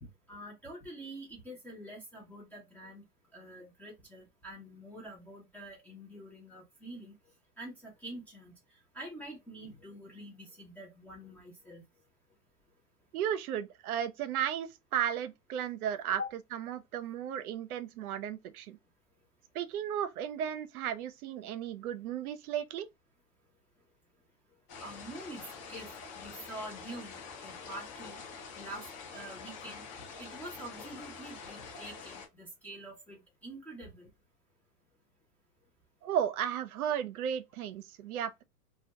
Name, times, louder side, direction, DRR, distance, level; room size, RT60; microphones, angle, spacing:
voice 1, 0.0-3.0 3.3-7.1 7.6-11.8 16.2-16.3 24.8-25.9 26.1-28.2 28.5-28.9 29.1-29.8 30.2-34.1, right 1 dB, 5° left, 0.4 m, -46 dB
voice 2, 13.1-16.2 16.5-18.8 19.5-22.9 36.0-38.4, right 9 dB, 75° right, 0.5 m, -34 dB
sound 1, 24.7-32.3, left 5 dB, 35° left, 0.8 m, -46 dB
2.2 x 2.1 x 2.8 m
hypercardioid pair, 110°, 45 cm